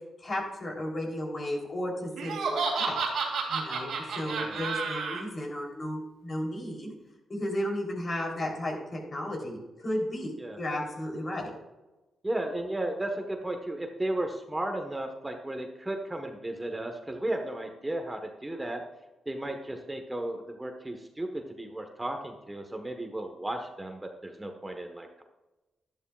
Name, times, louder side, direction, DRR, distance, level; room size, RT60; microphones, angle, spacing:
voice 1, 0.2-3.0 3.5-6.9 7.3-11.5, left 1 dB, 45° left, 0 dB, 3.5 m, -34 dB
Laughter, 2.2-5.2, right 5 dB, 75° right, 2.4 m, -31 dB
voice 2, 4.2-4.6 10.4-10.6 12.2-18.8 19.2-25.2, right 1 dB, 15° right, 4 dB, 1.3 m, -34 dB
12.0 x 11.0 x 2.4 m, 1.1 s
cardioid pair, 60°, 0 cm